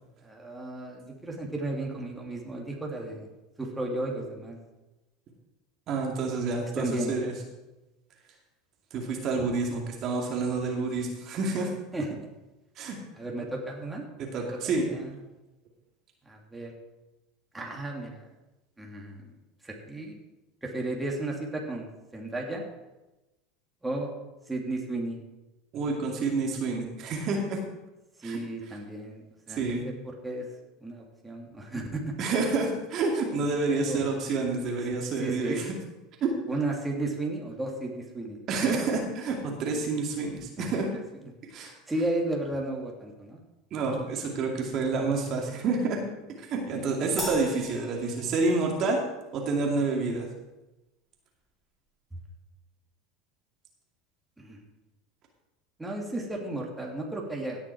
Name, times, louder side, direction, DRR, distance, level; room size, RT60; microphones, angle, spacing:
voice 1, 0.2-3.3 3.6-4.6 6.8-7.1 11.9-12.1 13.2-14.0 14.5-15.1 16.3-16.7 17.5-18.2 18.8-19.3 19.6-20.2 20.6-21.9 22.1-22.6 23.8-24.1 24.5-25.2 28.2-29.7 30.2-30.5 30.8-32.1 33.9-34.0 34.9-35.6 36.5-38.6 40.6-40.7 41.9-43.4 54.4-54.6 55.8-57.6, right 2 dB, 10° right, -1 dB, 2.5 m, -34 dB
voice 2, 5.9-7.3 8.9-11.7 12.8-13.0 14.2-14.9 25.7-27.6 28.2-28.8 29.5-29.9 32.2-35.7 36.2-36.3 38.5-40.9 41.5-41.7 43.7-46.0 46.4-49.0 49.3-50.3, right 3 dB, 50° right, 0 dB, 2.4 m, -28 dB
Crash cymbal, 47.2-48.8, equal, 5° left, 4.9 m, -38 dB
17.0 x 6.0 x 4.7 m, 1.0 s
hypercardioid pair, 90°, 0 cm